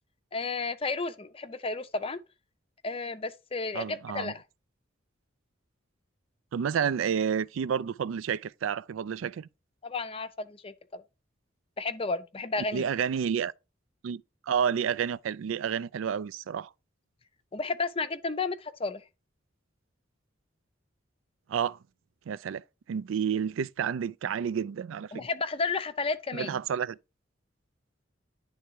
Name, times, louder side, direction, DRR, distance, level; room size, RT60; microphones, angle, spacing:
voice 1, 0.3-2.2 2.8-4.4 9.8-11.0 11.8-12.9 17.5-19.0 25.1-26.6, left 3 dB, 30° left, 0.5 m, -32 dB
voice 2, 3.7-4.3 6.5-9.5 12.7-13.5 14.0-16.7 21.5-21.8 22.3-22.6 22.9-25.2 26.3-27.0, right 7 dB, 85° right, 0.4 m, -30 dB
10.0 x 3.5 x 4.6 m
head